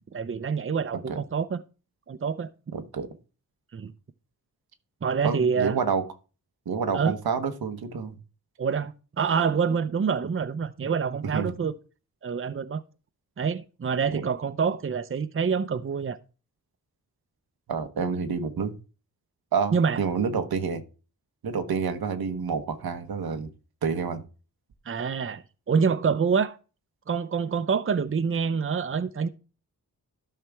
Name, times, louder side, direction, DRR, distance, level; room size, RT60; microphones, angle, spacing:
voice 1, 0.1-1.6 2.1-2.5 3.7-3.9 5.0-5.8 6.9-7.1 8.6-11.7 12.2-12.8 13.4-16.2 19.7-20.0 24.9-26.6 27.1-29.3, right 6 dB, 35° right, 0.7 m, -26 dB
voice 2, 2.7-3.1 5.2-6.0 6.7-8.2 11.3-11.5 14.1-14.2 17.7-18.7 19.5-20.8 21.4-23.5 23.8-24.2, right 6 dB, 90° right, 1.1 m, -28 dB
12.5 x 5.7 x 3.5 m
cardioid pair, 60°, 36 cm